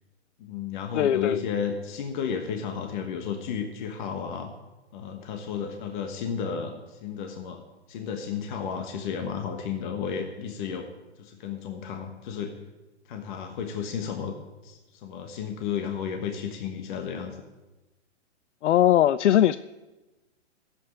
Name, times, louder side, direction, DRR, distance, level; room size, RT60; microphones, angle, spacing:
voice 1, 0.4-4.5 4.9-7.6 7.9-10.9 11.2-12.5 13.1-14.3 14.6-17.4, left 7 dB, 45° left, 1.3 m, -33 dB
voice 2, 0.9-1.4 18.6-19.6, left 12 dB, 85° left, 0.5 m, -20 dB
11.5 x 8.2 x 9.5 m
hypercardioid pair, 150°, 35 cm